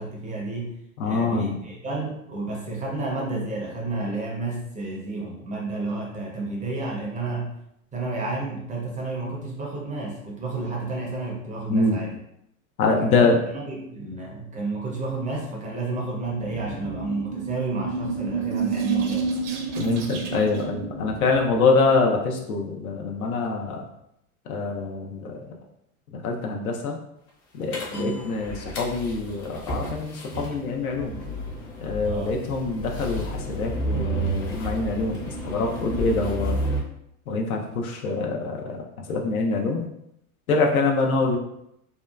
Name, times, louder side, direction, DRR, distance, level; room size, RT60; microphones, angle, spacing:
voice 1, 0.0-7.6 7.9-12.2 12.9-19.4 27.9-28.2 32.0-32.4, right 2 dB, 20° right, -2 dB, 0.5 m, -31 dB
voice 2, 1.0-1.6 11.7-12.0 12.8-13.4 19.8-23.8 24.5-25.5 26.1-27.0 27.5-31.2 31.8-35.2 35.4-36.6 37.3-38.8 39.1-39.8 40.5-41.4, left 3 dB, 75° left, 2 dB, 0.7 m, -24 dB
sound 1, 16.4-21.7, right 5 dB, 55° right, 0.7 m, -30 dB
sound 2, 27.7-36.8, right 1 dB, 35° left, 0.8 m, -31 dB
2.7 x 2.3 x 2.3 m, 0.78 s
hypercardioid pair, 95°, 43 cm